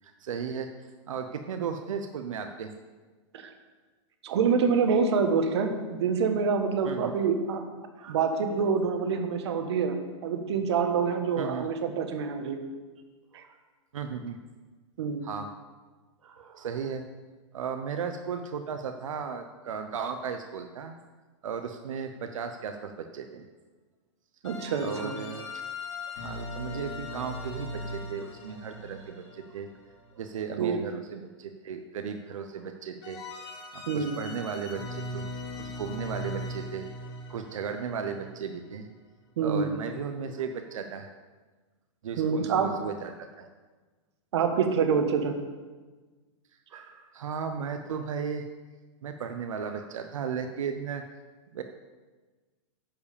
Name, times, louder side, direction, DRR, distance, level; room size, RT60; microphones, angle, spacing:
voice 1, 0.0-0.7 1.1-2.7 6.8-7.1 8.0-8.2 11.4-11.7 13.3-13.5 13.9-14.4 15.2-15.5 16.2-17.0 17.5-20.9 21.4-23.4 24.8-25.5 26.2-29.7 30.1-33.2 33.7-35.3 35.6-36.9 37.3-38.9 39.4-41.1 42.0-43.5 46.7-48.5 49.0-51.0 51.5-51.6, right 6 dB, 90° right, 6 dB, 0.8 m, -35 dB
voice 2, 4.2-7.6 8.1-12.6 13.3-13.4 15.0-15.2 24.4-25.1 30.6-30.8 33.9-34.1 39.4-39.7 42.2-42.7 44.3-45.3, right 5 dB, 60° right, 6 dB, 1.4 m, -26 dB
sound 1, 24.4-30.4 33.0-38.8, left 1 dB, 70° left, 3.5 m, -39 dB
10.5 x 4.9 x 6.8 m, 1.3 s
supercardioid pair, 170°, 16 cm